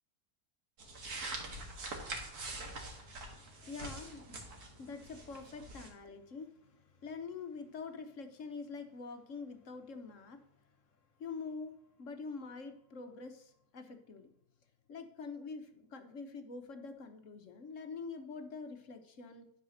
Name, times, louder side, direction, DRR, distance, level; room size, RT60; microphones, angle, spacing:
sound 1, 0.8-5.9, right 2 dB, 70° right, 2.2 m, -44 dB
voice 1, 3.2-10.4 11.2-14.3 14.9-19.4, left 4 dB, 55° left, 7 dB, 1.2 m, -46 dB
10.5 x 5.0 x 6.4 m, 0.73 s
omnidirectional pair, 1.7 m